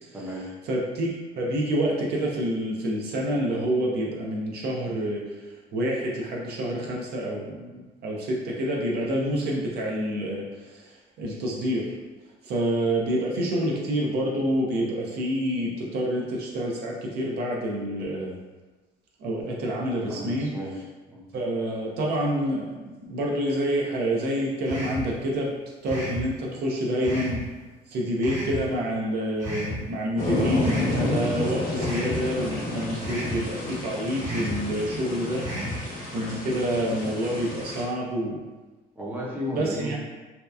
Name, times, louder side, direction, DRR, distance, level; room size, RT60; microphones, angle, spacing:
voice 1, 0.1-0.5 20.1-20.8 21.1-21.3 39.0-40.0, equal, 10° right, -4 dB, 0.5 m, -33 dB
voice 2, 0.7-5.5 5.7-11.9 12.4-18.4 19.2-20.5 21.3-25.5 25.8-27.4 27.9-38.4 39.5-40.0, equal, 70° right, -3 dB, 0.6 m, -28 dB
sound 1, 24.7-25.1 25.9-26.2 27.0-27.4 28.2-28.6 29.4-29.8 30.6-31.0 31.8-32.2 33.0-33.4 34.2-34.6 35.4-35.8, equal, 45° right, 0.9 m, -32 dB
sound 2, 30.2-37.8, left 2 dB, 55° left, 0.8 m, -30 dB
2.7 x 2.2 x 2.3 m, 1.2 s
cardioid pair, 110°, 17 cm